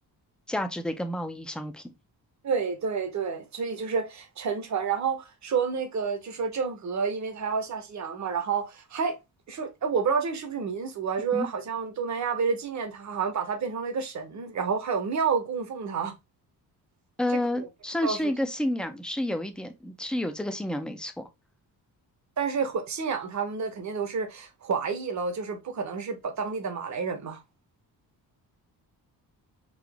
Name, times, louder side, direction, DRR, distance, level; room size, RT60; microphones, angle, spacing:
voice 1, 0.5-1.8 11.3-11.5 17.2-21.3, left 1 dB, ahead, 0.4 m, -30 dB
voice 2, 2.4-9.2 9.5-16.1 17.6-17.7 18.0-18.3 22.4-27.4, right 5 dB, 45° right, 0.9 m, -29 dB
3.9 x 2.8 x 3.4 m
wide cardioid pair, 145°, 39 cm